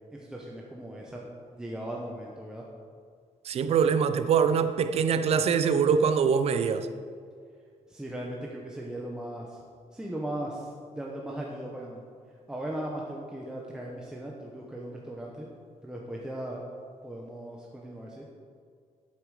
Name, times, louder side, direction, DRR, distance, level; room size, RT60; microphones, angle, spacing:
voice 1, 0.1-1.2 1.5-2.6 7.9-9.6 9.9-12.0 12.5-15.5 15.8-16.7 17.0-18.3, right 1 dB, 5° right, 1.1 m, -38 dB
voice 2, 3.5-6.9, right 6 dB, 55° right, 0.7 m, -24 dB
11.0 x 8.6 x 5.0 m
cardioid pair, 145°, 12 cm